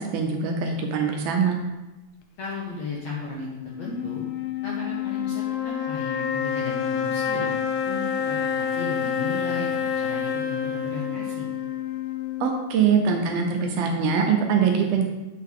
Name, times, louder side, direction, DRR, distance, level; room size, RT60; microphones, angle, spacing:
voice 1, 0.0-1.6 12.4-15.0, right 6 dB, 75° right, 3 dB, 2.5 m, -23 dB
voice 2, 2.4-4.2 4.6-7.5 7.9-11.5, left 3 dB, 60° left, -5 dB, 1.8 m, -35 dB
sound 1, 3.6-13.0, left 8 dB, 85° left, 1.7 m, -28 dB
10.0 x 6.5 x 3.7 m, 1.1 s
omnidirectional pair, 4.8 m